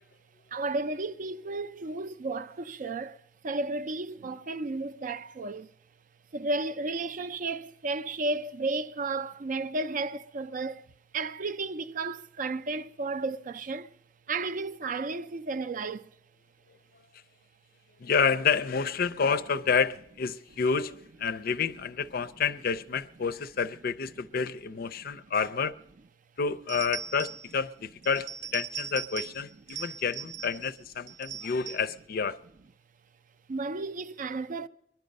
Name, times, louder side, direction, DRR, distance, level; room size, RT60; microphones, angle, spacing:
voice 1, 0.5-3.2 3.4-5.7 6.3-10.8 11.1-13.9 14.3-16.1 25.0-25.2 31.3-31.5 33.5-34.7, right 3 dB, 50° right, 0.4 m, -33 dB
voice 2, 18.0-25.7 26.4-32.4, left 6 dB, 55° left, 0.5 m, -29 dB
sound 1, 26.7-27.5 28.0-29.4 29.7-30.7 31.1-31.9, right 8 dB, 85° right, 1.0 m, -39 dB
22.5 x 10.5 x 5.2 m
head